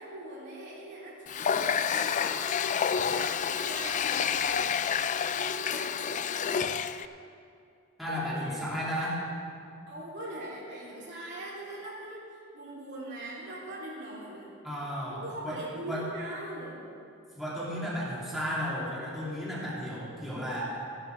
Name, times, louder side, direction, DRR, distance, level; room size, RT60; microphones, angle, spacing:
voice 1, 0.0-2.5 2.9-4.8 5.3-6.5 8.1-8.6 9.9-12.2 12.5-14.5 15.1-16.8, right 1 dB, 55° right, -5 dB, 3.0 m, -42 dB
Water tap faucet, 1.3-7.1, left 7 dB, 35° left, 0.3 m, -29 dB
voice 2, 8.0-9.2 14.6-16.1 17.3-20.8, equal, ahead, -9 dB, 2.7 m, -34 dB
14.0 x 11.5 x 4.6 m, 2.5 s
head